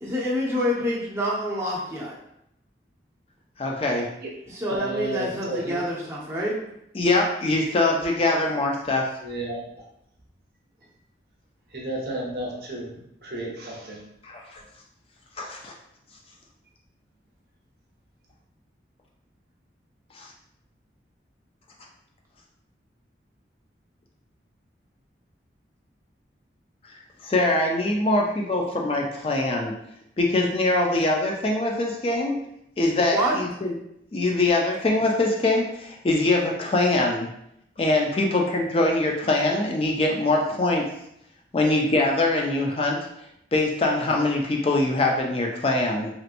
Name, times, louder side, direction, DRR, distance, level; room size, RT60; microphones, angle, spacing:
voice 1, 0.0-2.1 4.5-6.5 33.1-33.4, equal, 15° right, -5 dB, 0.6 m, -27 dB
voice 2, 3.6-4.1 6.9-9.1 14.2-14.6 15.4-15.7 20.2-20.3 27.2-29.7 30.2-32.4 32.8-33.7 34.1-37.3 37.8-40.8 41.5-43.0 43.5-46.1, left 2 dB, 30° left, 0 dB, 0.3 m, -23 dB
voice 3, 4.7-5.8 9.2-9.6 11.7-12.9 13.2-14.0, right 1 dB, 55° right, -2 dB, 0.7 m, -32 dB
3.0 x 2.8 x 2.5 m, 0.77 s
head